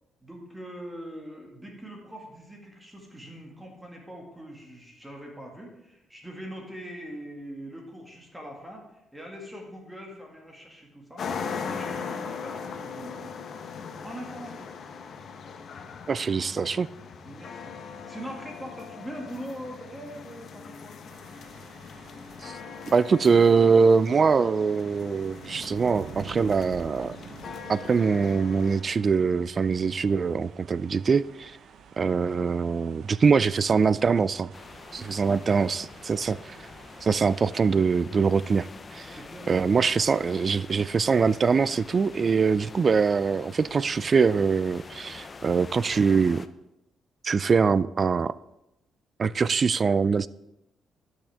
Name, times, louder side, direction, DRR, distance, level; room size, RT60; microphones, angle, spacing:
voice 1, 0.2-11.3 11.6-13.3 14.0-14.7 17.2-17.8 18.1-21.0 35.0-35.4 39.1-39.5, equal, 10° right, 2.1 m, -42 dB
sound 1, 11.2-28.8, left 6 dB, 55° left, 0.8 m, -40 dB
voice 2, 16.1-16.9 22.4-22.6 22.9-27.2 27.7-31.6 32.0-34.5 34.9-36.6 37.0-39.2 39.5-46.4 47.2-48.3 49.2-50.3, right 5 dB, 40° right, 0.3 m, -23 dB
sound 2, 21.1-37.7, right 7 dB, 65° right, 0.7 m, -49 dB
sound 3, 34.5-46.5, left 4 dB, 35° left, 0.5 m, -45 dB
12.0 x 6.3 x 3.5 m
cardioid pair, 90°, 0 cm